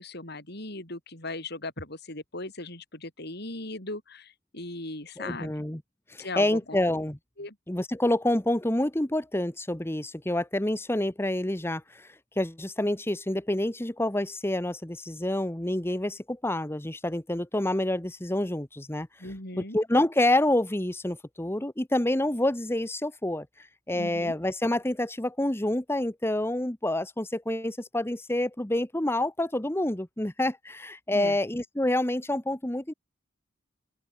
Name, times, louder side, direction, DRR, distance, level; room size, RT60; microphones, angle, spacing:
voice 1, 0.0-5.6 6.2-6.8 7.4-7.5 19.2-19.8 23.9-24.4 31.1-31.4, left 2 dB, 60° left, 6.7 m, -38 dB
voice 2, 5.2-5.8 6.1-7.2 7.7-12.1 12.4-19.1 19.6-23.5 23.9-32.9, left 1 dB, 15° left, 1.2 m, -28 dB
open air
head